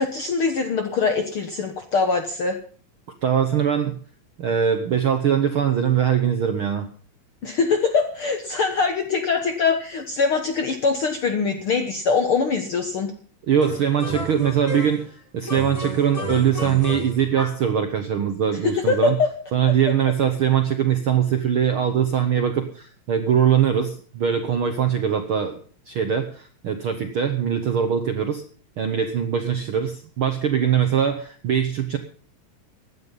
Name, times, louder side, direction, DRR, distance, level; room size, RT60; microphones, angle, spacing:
voice 1, 0.0-2.6 7.4-13.1 18.6-19.3, left 4 dB, 60° left, 6 dB, 1.5 m, -23 dB
voice 2, 3.2-4.0 4.4-6.9 13.5-19.2 19.5-25.6 25.9-28.4 28.8-32.0, right 8 dB, 65° right, 7 dB, 1.3 m, -22 dB
sound 1, 13.6-15.1 15.5-17.7, left 1 dB, 25° left, 0.8 m, -32 dB
16.5 x 11.0 x 5.5 m, 0.42 s
omnidirectional pair, 4.0 m